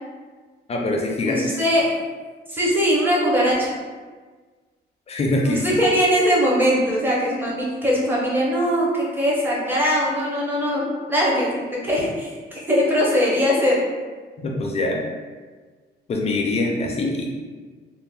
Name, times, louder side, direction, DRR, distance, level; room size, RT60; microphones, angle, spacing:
voice 1, 0.7-1.4 5.1-5.6 14.4-15.0 16.1-17.3, left 2 dB, 35° left, 0 dB, 0.4 m, -23 dB
voice 2, 1.3-1.9 2.5-3.8 5.4-12.3 12.7-13.8, equal, 10° right, -5 dB, 0.6 m, -21 dB
2.4 x 2.1 x 3.3 m, 1.4 s
cardioid pair, 150°, 18 cm